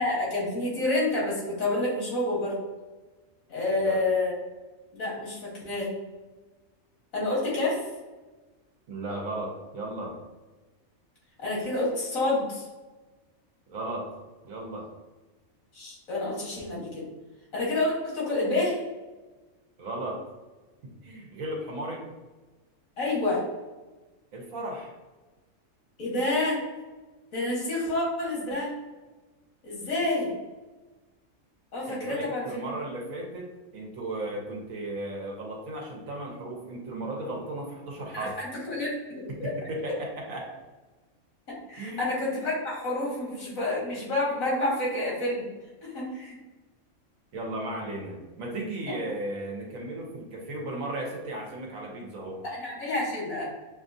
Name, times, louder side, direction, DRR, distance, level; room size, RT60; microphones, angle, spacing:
voice 1, 0.0-2.6 3.5-4.3 4.9-5.9 7.1-7.8 11.4-12.6 15.7-17.0 17.5-18.8 23.0-23.5 26.0-26.6 27.3-28.7 29.6-30.3 31.7-32.7 38.1-39.5 41.7-45.5 45.8-46.4 48.9-49.0 52.4-53.4, left 2 dB, 75° left, -5 dB, 1.9 m, -28 dB
voice 2, 8.9-10.2 13.7-14.1 14.4-14.9 19.8-20.3 20.8-22.0 24.3-24.9 31.9-38.4 39.3-40.5 41.8-42.1 47.3-52.4, right 1 dB, 80° right, 0 dB, 1.3 m, -35 dB
6.1 x 2.4 x 2.6 m, 1.2 s
omnidirectional pair, 1.4 m